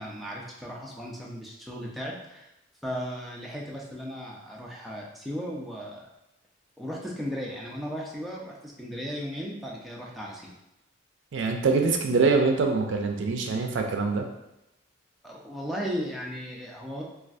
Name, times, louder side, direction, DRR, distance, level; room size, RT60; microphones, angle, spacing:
voice 1, 0.0-2.5 2.8-6.0 6.8-10.5 15.2-17.0, equal, ahead, -3 dB, 0.4 m, -36 dB
voice 2, 11.3-14.3, right 4 dB, 65° right, 3 dB, 0.4 m, -24 dB
3.3 x 2.4 x 2.5 m, 0.89 s
head